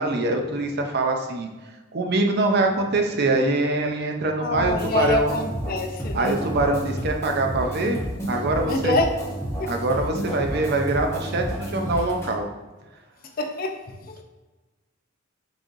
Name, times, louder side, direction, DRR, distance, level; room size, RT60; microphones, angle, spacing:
voice 1, 0.0-1.5 1.9-5.3 6.1-8.0 8.3-9.0 9.6-12.5, right 2 dB, 55° right, 3 dB, 0.6 m, -24 dB
voice 2, 4.4-6.4 8.7-9.1 9.6-9.7 13.4-13.7 14.1-14.2, left 2 dB, 45° left, 4 dB, 0.5 m, -25 dB
sound 1, 4.5-12.3, equal, 15° left, 1.0 m, -31 dB
6.1 x 3.3 x 2.6 m, 1.2 s
head